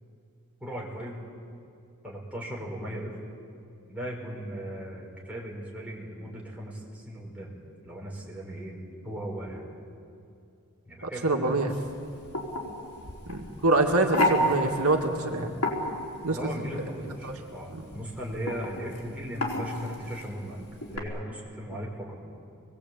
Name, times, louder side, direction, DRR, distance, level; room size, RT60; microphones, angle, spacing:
voice 1, 0.6-1.2 2.0-3.2 3.9-7.5 7.8-8.8 9.0-9.6 10.9-11.3 16.3-20.6 20.9-22.2, equal, 5° right, -3 dB, 5.9 m, -37 dB
voice 2, 11.0-11.7 13.3-15.5 16.2-16.4 17.2-17.3 17.7-17.8, right 2 dB, 75° right, 2 dB, 2.2 m, -25 dB
sound 1, 11.7-21.0, left 1 dB, 80° left, 4.6 m, -32 dB
27.5 x 22.0 x 8.8 m, 2.6 s
head